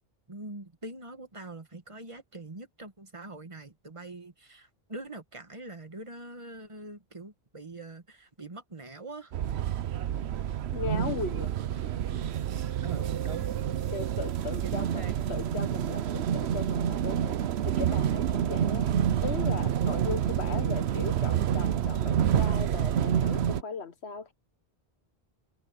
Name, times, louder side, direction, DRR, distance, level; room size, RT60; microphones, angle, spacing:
voice 1, 0.3-9.3 12.8-13.5 14.6-15.1, right 2 dB, 30° right, 1.7 m, -44 dB
sound 1, 9.3-23.6, right 9 dB, 85° right, 1.0 m, -28 dB
voice 2, 10.7-11.5 13.9-17.4 17.6-18.9 19.2-24.3, left 5 dB, 85° left, 1.6 m, -37 dB
omnidirectional pair, 1.1 m